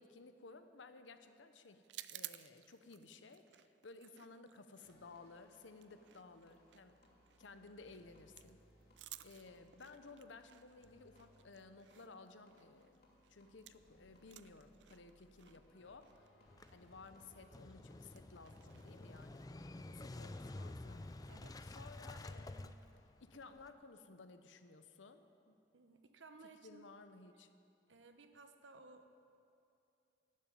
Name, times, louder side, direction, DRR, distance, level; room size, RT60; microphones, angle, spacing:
voice 1, 0.0-1.8 2.1-7.0 7.4-8.6 9.2-13.0 13.3-16.3 16.7-21.0 21.6-22.8 23.2-25.6 26.6-27.5, left 3 dB, 85° left, 9 dB, 0.8 m, -57 dB
sound 1, 1.8-13.9 14.2-19.5, right 15 dB, 70° right, 0.4 m, -57 dB
sound 2, 4.8-22.0, equal, 55° left, 2.6 m, -69 dB
Motorcycle / Engine starting, 16.5-23.7, left 2 dB, 20° left, 0.4 m, -50 dB
voice 2, 21.2-21.6 25.7-26.8 27.9-29.1, right 3 dB, 90° right, 7 dB, 1.0 m, -59 dB
12.0 x 9.0 x 8.7 m, 2.6 s
head